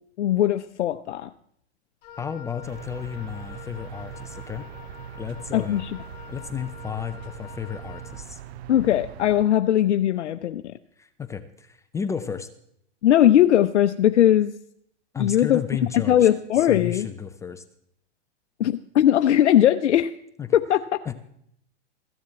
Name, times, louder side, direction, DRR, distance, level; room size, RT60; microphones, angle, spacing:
voice 1, 0.2-1.3 5.5-5.9 8.7-10.7 13.0-14.5 15.2-15.6 16.1-17.1 18.6-20.1 20.5-20.8, left 11 dB, 80° left, 9 dB, 0.7 m, -19 dB
Wind instrument woodwind instrument, 2.0-8.3, left 8 dB, 55° left, 1.8 m, -46 dB
voice 2, 2.2-4.7 5.2-5.8 6.3-8.4 11.0-12.5 15.1-16.3 16.6-17.6 20.4-20.5 21.0-21.1, left 7 dB, 10° left, 10 dB, 0.4 m, -32 dB
sound 1, 2.6-9.5, right 10 dB, 65° right, 0.7 m, -41 dB
14.5 x 7.3 x 7.8 m, 0.72 s
hypercardioid pair, 125°, 34 cm